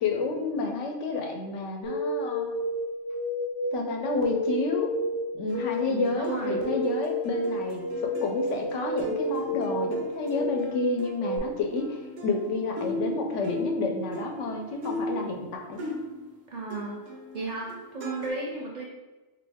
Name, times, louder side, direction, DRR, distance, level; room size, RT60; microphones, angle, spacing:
voice 1, 0.0-2.5 3.7-4.9 5.3-15.8, left 4 dB, 80° left, 3 dB, 0.9 m, -30 dB
sound 1, 1.8-11.4, equal, 50° left, 0.5 m, -31 dB
sound 2, 5.5-16.4 16.7-18.3, equal, 85° right, 1.0 m, -38 dB
voice 2, 5.9-6.6 16.5-17.0 17.3-18.8, right 2 dB, 50° right, -3 dB, 0.6 m, -34 dB
3.0 x 2.7 x 3.4 m, 1.2 s
omnidirectional pair, 1.2 m